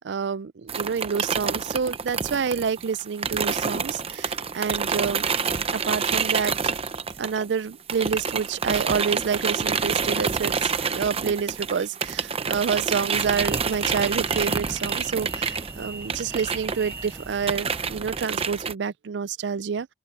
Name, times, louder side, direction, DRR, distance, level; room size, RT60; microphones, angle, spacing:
voice 1, 0.0-5.3 5.7-6.5 7.2-19.9, right 6 dB, 70° right, 0.4 m, -28 dB
sound 1, 0.7-7.6 7.9-18.7, right 5 dB, 35° right, 0.8 m, -28 dB
sound 2, 13.1-18.2, right 2 dB, 15° right, 0.4 m, -39 dB
open air
head